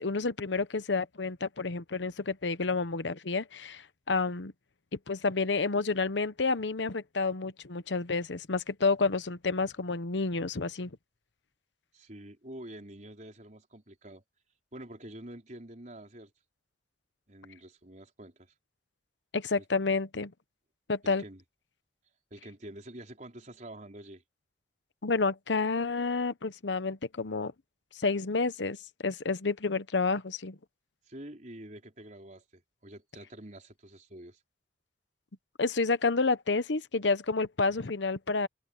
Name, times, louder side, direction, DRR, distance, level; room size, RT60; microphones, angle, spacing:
voice 1, 0.0-4.5 5.1-10.9 19.3-20.3 20.9-21.2 25.0-27.5 28.0-28.8 29.0-30.6 35.6-38.5, left 4 dB, 80° left, 0.9 m, -29 dB
voice 2, 11.9-14.2 14.7-16.3 17.3-18.5 21.0-21.4 22.3-24.2 31.1-34.4, right 1 dB, 40° right, 4.9 m, -47 dB
open air
head